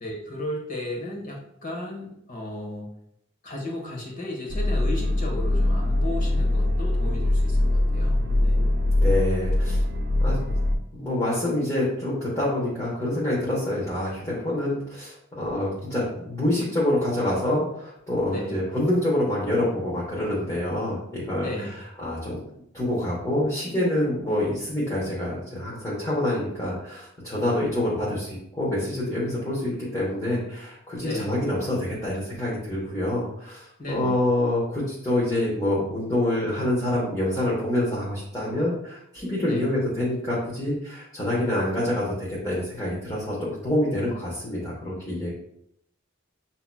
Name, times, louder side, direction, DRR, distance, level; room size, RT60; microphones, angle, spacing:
voice 1, 0.0-2.9 3.4-8.6 18.3-18.6 21.4-21.8 31.0-31.4 33.8-34.2 39.4-39.7, left 1 dB, 40° left, -1 dB, 1.1 m, -34 dB
sound 1, 4.5-10.7, left 1 dB, 60° right, 0.7 m, -22 dB
voice 2, 8.1-8.6 9.0-9.8 10.2-10.4 10.9-21.5 22.0-22.4 22.7-45.3, left 1 dB, 15° left, -7 dB, 1.1 m, -26 dB
7.1 x 2.8 x 2.2 m, 0.74 s
head